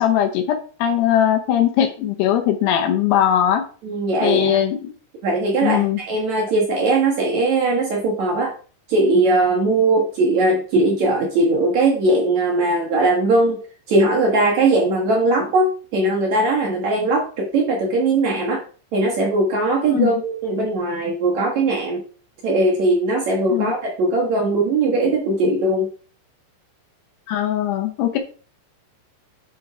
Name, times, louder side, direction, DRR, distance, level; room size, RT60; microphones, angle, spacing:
voice 1, 0.0-3.6 4.2-4.9 5.6-6.0 19.9-20.1 23.5-23.7 27.3-28.2, left 10 dB, 75° left, 5 dB, 2.7 m, -20 dB
voice 2, 3.8-4.6 5.2-8.5 8.9-13.6 13.9-18.6 18.9-22.0 22.4-25.9, right 2 dB, 70° right, -1 dB, 1.7 m, -19 dB
9.6 x 4.6 x 4.9 m, 0.40 s
omnidirectional pair, 5.4 m